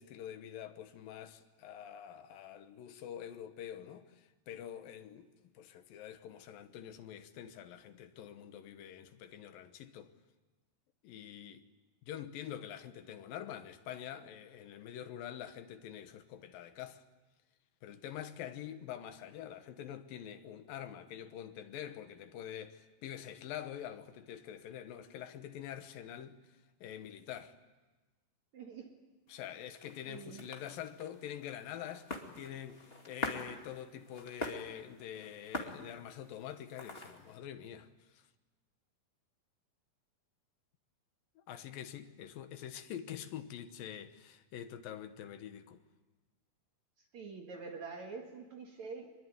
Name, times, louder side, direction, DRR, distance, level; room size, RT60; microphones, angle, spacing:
voice 1, 0.0-10.1 11.0-11.6 12.1-17.0 17.8-26.4 26.8-27.6 29.3-37.9 38.1-38.2 41.4-45.8, left 10 dB, 70° left, 2.6 m, -46 dB
voice 2, 28.5-29.0 30.1-30.5 47.1-49.1, right 4 dB, 50° right, 2.8 m, -46 dB
sound 1, 29.3-37.4, left 2 dB, 20° left, 1.6 m, -45 dB
24.0 x 22.0 x 9.4 m
omnidirectional pair, 4.7 m